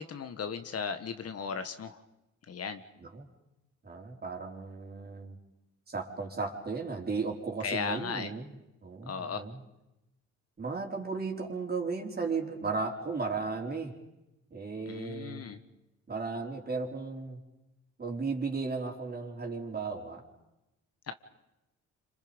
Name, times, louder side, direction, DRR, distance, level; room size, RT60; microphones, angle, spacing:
voice 1, 0.0-2.0 2.5-2.8 7.6-8.3 9.1-9.4 14.9-15.6 21.1-21.2, left 6 dB, 55° left, 9 dB, 1.6 m, -36 dB
voice 2, 3.8-5.4 5.9-8.5 8.8-9.6 10.6-13.9 14.5-15.4 16.1-17.4 18.0-20.2, right 4 dB, 30° right, 1 dB, 4.5 m, -35 dB
29.0 x 26.5 x 5.4 m, 0.94 s
cardioid pair, 90°, 30 cm